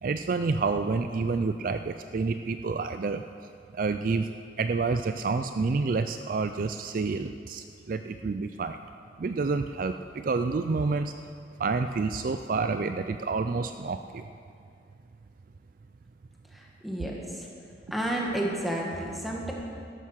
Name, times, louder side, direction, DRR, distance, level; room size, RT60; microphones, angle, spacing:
voice 1, 0.0-3.2 3.7-4.3 4.6-8.8 9.2-11.1 11.6-14.2, right 4 dB, 45° right, 8 dB, 0.4 m, -28 dB
voice 2, 16.5-17.5 17.9-19.5, right 1 dB, ahead, -2 dB, 1.7 m, -31 dB
13.0 x 11.5 x 6.4 m, 2.4 s
head